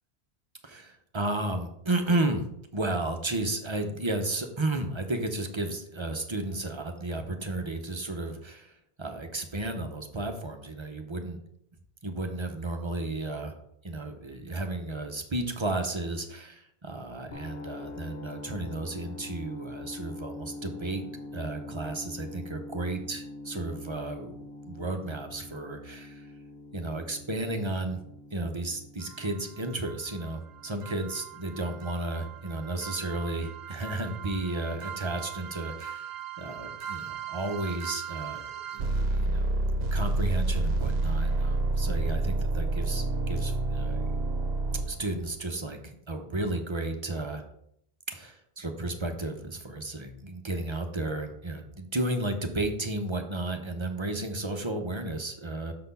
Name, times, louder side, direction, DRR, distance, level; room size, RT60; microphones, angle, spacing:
voice 1, 0.6-2.4 2.7-11.4 12.0-13.5 13.8-21.0 21.3-24.3 24.7-26.3 26.7-28.0 28.3-38.4 38.7-39.5 39.9-44.1 44.9-47.4 48.1-55.7, right 2 dB, 30° right, 5 dB, 0.7 m, -33 dB
sound 1, 17.3-33.2, left 2 dB, 65° left, 0.9 m, -45 dB
sound 2, 29.0-29.1 29.9-30.0 30.2-30.3 30.8-45.2, right 2 dB, 70° right, 0.9 m, -31 dB
6.7 x 4.1 x 5.4 m, 0.74 s
omnidirectional pair, 1.1 m